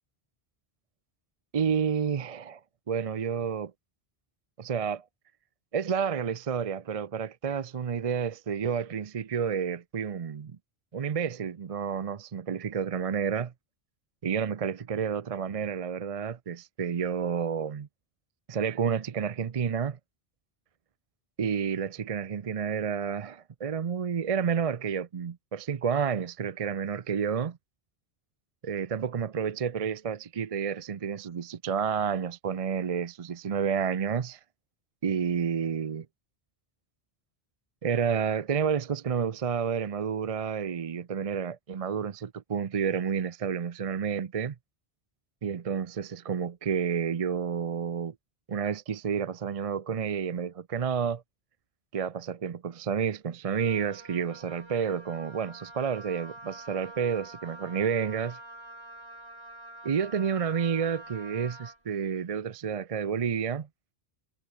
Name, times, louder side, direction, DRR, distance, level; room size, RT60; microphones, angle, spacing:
voice 1, 1.5-2.6 2.9-3.7 4.6-5.0 5.7-10.6 10.9-13.5 14.2-17.9 18.5-20.0 21.4-27.6 28.6-34.4 35.0-36.1 37.8-44.5 45.4-48.1 48.5-51.2 51.9-58.4 59.8-63.7, right 7 dB, 40° right, 0.6 m, -30 dB
Wind instrument woodwind instrument, 53.5-61.8, right 1 dB, 80° right, 7.4 m, -47 dB
omnidirectional pair, 1.0 m